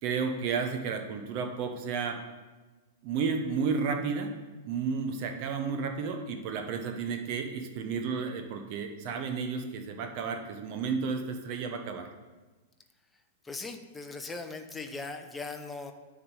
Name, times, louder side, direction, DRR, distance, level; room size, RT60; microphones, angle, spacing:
voice 1, 0.0-2.2 3.0-4.3 4.7-12.1, right 5 dB, 45° right, 5 dB, 1.0 m, -32 dB
voice 2, 13.4-15.9, left 3 dB, 10° left, 6 dB, 0.8 m, -39 dB
9.8 x 3.7 x 6.8 m, 1.2 s
figure-of-eight pair, 100°, 0 cm